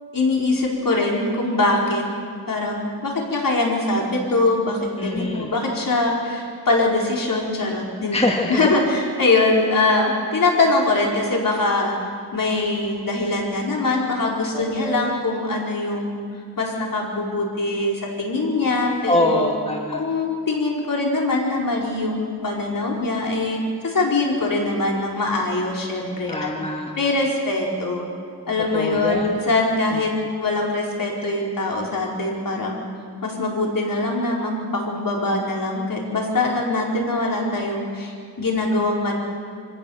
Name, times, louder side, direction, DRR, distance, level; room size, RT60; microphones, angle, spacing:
voice 1, 0.1-2.0 2.5-8.2 8.5-11.9 12.3-16.2 16.6-19.5 19.9-23.6 23.8-26.5 27.0-28.0 28.5-30.1 30.4-32.8 33.2-39.1, left 2 dB, 55° left, -1 dB, 4.3 m, -22 dB
voice 2, 5.0-5.5 8.1-8.7 14.5-15.1 19.1-20.0 26.3-26.9 28.7-29.4 29.9-30.0, left 1 dB, 15° left, 1 dB, 1.6 m, -24 dB
25.0 x 16.0 x 7.0 m, 2.2 s
wide cardioid pair, 105°, 40 cm